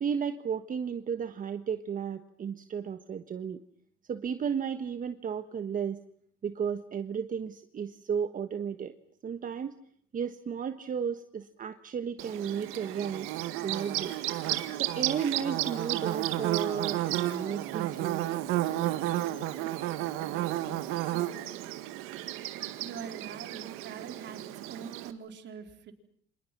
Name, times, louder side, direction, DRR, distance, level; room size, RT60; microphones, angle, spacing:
voice 1, 0.0-3.6 4.1-6.0 6.4-8.9 9.2-9.7 10.1-13.3 13.6-14.1 14.7-18.3, right 7 dB, 40° right, 9 dB, 1.4 m, -33 dB
Bird / Buzz, 12.2-25.1, right 14 dB, 90° right, 2.0 m, -32 dB
voice 2, 22.8-25.9, right 6 dB, 60° right, 5 dB, 4.1 m, -44 dB
29.0 x 26.0 x 6.1 m, 0.64 s
cardioid pair, 105°, 21 cm